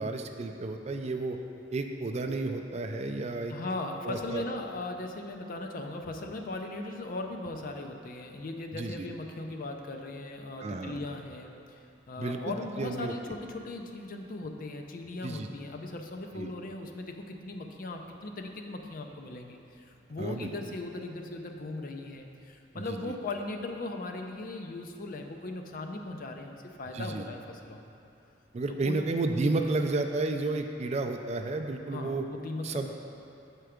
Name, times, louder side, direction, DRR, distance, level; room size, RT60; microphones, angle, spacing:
voice 1, 0.0-1.4 1.7-3.5 4.0-4.4 8.7-9.1 10.6-11.0 12.2-13.1 15.2-15.5 16.4-16.5 20.2-20.5 23.1-23.2 26.9-27.2 28.5-32.2 32.6-32.9, right 2 dB, 35° right, 5 dB, 0.4 m, -32 dB
voice 2, 3.5-11.8 12.1-27.8 28.7-29.0 31.9-32.9, left 2 dB, 50° left, 4 dB, 0.5 m, -38 dB
6.8 x 4.5 x 5.0 m, 2.7 s
head